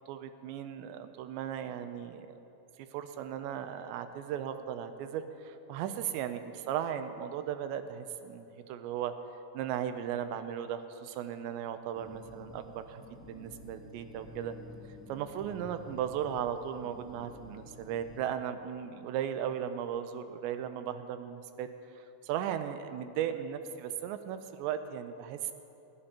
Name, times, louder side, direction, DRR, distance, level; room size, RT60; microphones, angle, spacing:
voice 1, 0.1-2.3 2.9-9.1 9.5-14.5 15.1-21.7 22.0-25.5, right 9 dB, 80° right, 9 dB, 2.8 m, -36 dB
sound 1, 11.9-18.2, left 1 dB, ahead, 0.8 m, -51 dB
20.5 x 15.0 x 2.9 m, 2.9 s
omnidirectional pair, 5.2 m